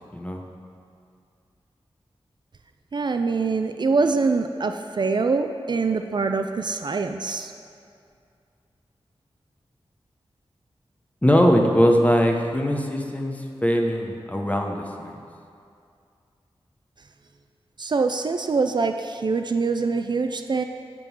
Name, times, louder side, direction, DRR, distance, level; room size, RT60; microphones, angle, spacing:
voice 1, 2.9-7.5 17.8-20.6, right 4 dB, 50° right, 6 dB, 0.4 m, -24 dB
voice 2, 11.2-15.2, equal, 15° left, 2 dB, 0.8 m, -21 dB
10.5 x 3.7 x 7.0 m, 2.4 s
wide cardioid pair, 90°, 10 cm